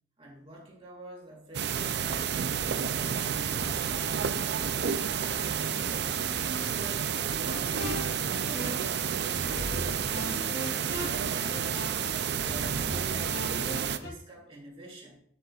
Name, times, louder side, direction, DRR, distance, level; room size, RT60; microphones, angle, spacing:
voice 1, 0.2-2.4 2.8-6.2 6.5-10.6 10.9-12.8 13.1-15.2, right 1 dB, 30° right, -1 dB, 2.0 m, -47 dB
sound 1, 1.5-14.0, right 7 dB, 60° right, 0.4 m, -30 dB
sound 2, 7.5-9.0 9.3-14.1, equal, 65° left, 3.0 m, -39 dB
9.2 x 8.0 x 2.4 m, 0.62 s
head